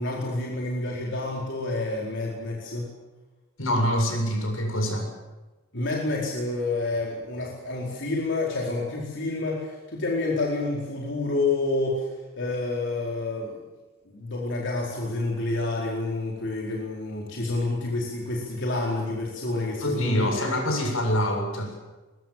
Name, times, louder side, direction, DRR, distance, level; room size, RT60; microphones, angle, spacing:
voice 1, 0.0-2.9 5.7-12.1 12.4-13.6 14.1-20.5, left 2 dB, 65° left, -2 dB, 4.4 m, -28 dB
voice 2, 3.6-5.1 19.8-21.7, equal, 90° left, 3 dB, 7.4 m, -25 dB
23.5 x 21.5 x 7.6 m, 1.2 s
head